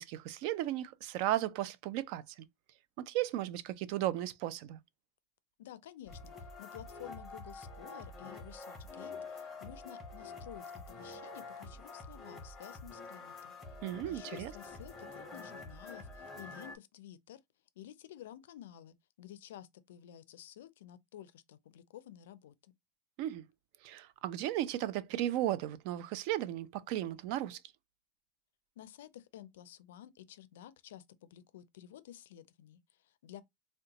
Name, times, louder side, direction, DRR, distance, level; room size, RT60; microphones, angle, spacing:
voice 1, 0.0-2.5 3.0-4.8 13.8-14.5 23.2-23.5 23.8-27.6, right 13 dB, 55° right, 0.3 m, -35 dB
voice 2, 5.6-13.6 14.0-17.4 17.8-22.7 28.8-33.4, left 12 dB, 90° left, 0.4 m, -52 dB
sound 1, 6.1-16.8, left 3 dB, 10° left, 0.9 m, -47 dB
3.7 x 2.1 x 2.8 m
supercardioid pair, 155°, 0 cm